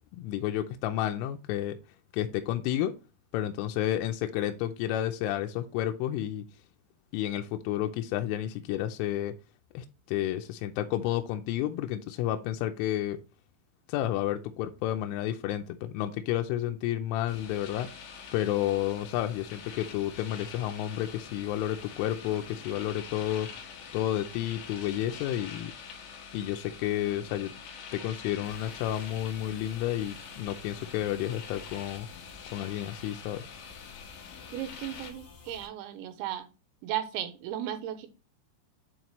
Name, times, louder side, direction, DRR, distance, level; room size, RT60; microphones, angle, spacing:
voice 1, 0.1-1.8 2.1-2.9 3.3-6.4 7.1-9.3 9.7-13.2 13.9-17.9 18.3-23.5 23.9-25.7 26.3-27.5 27.9-32.1 32.5-33.4, left 12 dB, 90° left, 5 dB, 3.1 m, -31 dB
sound 1, 17.3-35.1, left 6 dB, 70° left, 3.5 m, -45 dB
sound 2, 28.4-35.7, left 5 dB, 45° left, 3.5 m, -53 dB
voice 2, 34.5-36.5 36.8-38.1, right 11 dB, 85° right, 10 dB, 3.0 m, -35 dB
9.5 x 4.3 x 2.9 m, 0.30 s
omnidirectional pair, 5.5 m